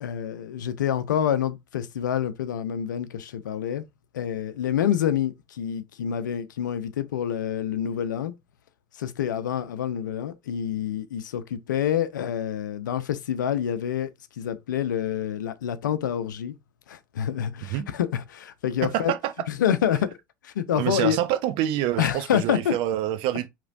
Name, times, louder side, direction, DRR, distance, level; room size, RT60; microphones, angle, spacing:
voice 1, 0.0-3.8 4.1-8.3 8.9-14.1 14.4-16.6 16.9-19.1 19.5-20.1 20.4-21.2 22.0-22.7, left 9 dB, 75° left, 0.6 m, -27 dB
voice 2, 18.8-19.3 20.7-23.5, right 12 dB, 55° right, 0.8 m, -26 dB
4.9 x 3.3 x 2.6 m
figure-of-eight pair, 75°, 10 cm